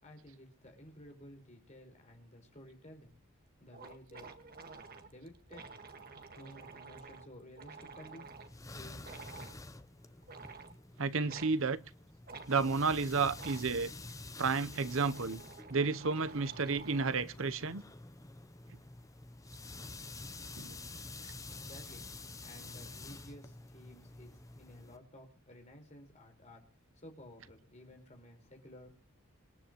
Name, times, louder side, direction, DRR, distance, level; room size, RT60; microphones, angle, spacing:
voice 1, 0.0-3.2 3.6-4.7 5.0-5.6 6.3-8.3 8.7-9.6 21.5-22.1 22.4-28.9, left 1 dB, 35° left, 4.9 m, -54 dB
sound 1, 3.1-3.2 3.4-3.5 3.7-8.5 9.0-9.6 10.2-10.8 11.3-11.5 12.3-12.5 13.3-13.7 14.4-17.2, right 4 dB, 45° right, 1.7 m, -51 dB
sound 2, 8.2-25.0, left 2 dB, 15° left, 0.8 m, -49 dB
voice 2, 11.0-11.8 12.5-13.9 14.4-15.4 15.7-17.8 20.6-20.8, right 4 dB, 65° right, 0.8 m, -31 dB
26.5 x 10.5 x 3.1 m
head